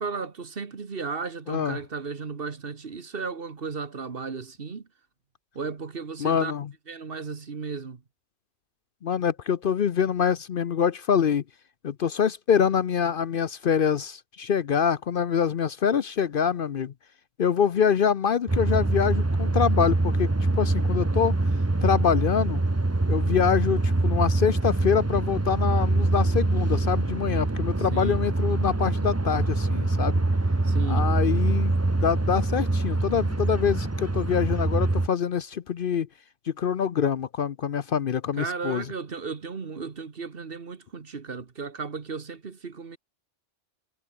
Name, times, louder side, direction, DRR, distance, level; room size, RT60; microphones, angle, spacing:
voice 1, 0.0-4.9 5.5-6.5 6.9-8.0 27.9-28.2 30.6-31.1 38.4-43.0, right 5 dB, 55° right, 1.6 m, -35 dB
voice 2, 1.5-1.8 6.2-6.7 9.0-11.4 11.8-16.9 17.4-20.3 20.6-21.3 21.8-22.6 23.1-30.2 30.9-36.1 36.5-38.8, left 7 dB, 55° left, 0.8 m, -25 dB
sound 1, 18.5-35.1, right 2 dB, 15° right, 0.9 m, -24 dB
omnidirectional pair, 1.2 m